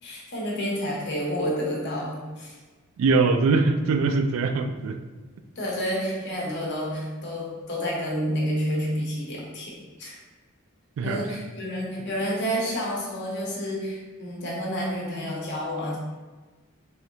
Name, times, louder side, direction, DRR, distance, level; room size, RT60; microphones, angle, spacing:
voice 1, 0.0-2.6 5.5-10.2 11.0-16.0, equal, 60° left, -4 dB, 0.9 m, -29 dB
voice 2, 3.0-5.0 11.0-11.3, right 4 dB, 75° right, 7 dB, 0.3 m, -22 dB
3.4 x 2.6 x 2.8 m, 1.3 s
head